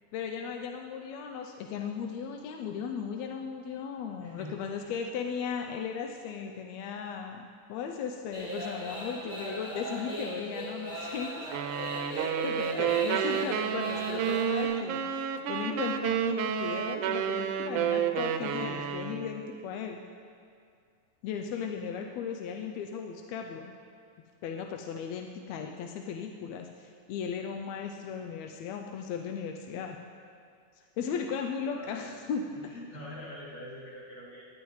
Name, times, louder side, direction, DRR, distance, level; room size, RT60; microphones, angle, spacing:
voice 1, 0.1-7.4 7.7-11.5 12.1-20.0 21.2-23.7 24.4-30.0 30.8-32.7, left 6 dB, 80° left, 3 dB, 1.8 m, -36 dB
voice 2, 4.2-4.9 31.7-32.1 32.6-34.5, left 1 dB, 60° left, -8 dB, 4.3 m, -45 dB
sound 1, 8.3-14.6, equal, 10° left, 3.1 m, -38 dB
sound 2, 11.5-19.5, right 8 dB, 90° right, 2.1 m, -30 dB
17.5 x 11.0 x 3.2 m, 2.2 s
omnidirectional pair, 3.5 m